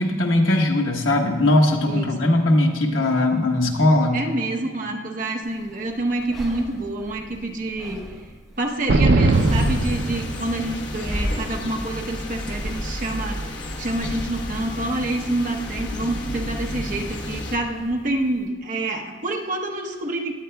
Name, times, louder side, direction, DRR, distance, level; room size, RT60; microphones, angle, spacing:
voice 1, 0.0-4.2, left 1 dB, 85° left, 1 dB, 1.3 m, -19 dB
voice 2, 1.9-2.4 4.1-8.1 8.6-20.3, right 2 dB, 40° right, 1 dB, 0.9 m, -27 dB
sound 1, 5.4-18.5, equal, ahead, 1.2 m, -35 dB
sound 2, 8.9-10.8, right 2 dB, 60° right, 0.5 m, -20 dB
sound 3, 9.3-17.6, left 1 dB, 60° left, 1.1 m, -32 dB
16.5 x 10.5 x 2.3 m, 1.4 s
head